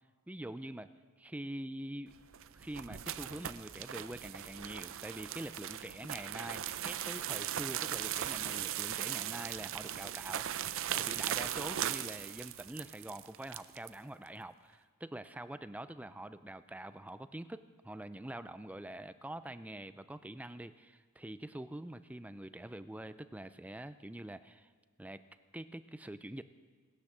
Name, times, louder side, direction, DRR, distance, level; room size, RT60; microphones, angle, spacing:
voice 1, 0.3-0.9 1.2-2.1 2.5-24.7 25.0-25.2 25.5-26.4, right 1 dB, 5° right, 12 dB, 0.4 m, -45 dB
sound 1, 2.2-13.9, right 10 dB, 65° right, 0.6 m, -38 dB
19.0 x 10.0 x 7.4 m, 1.5 s
head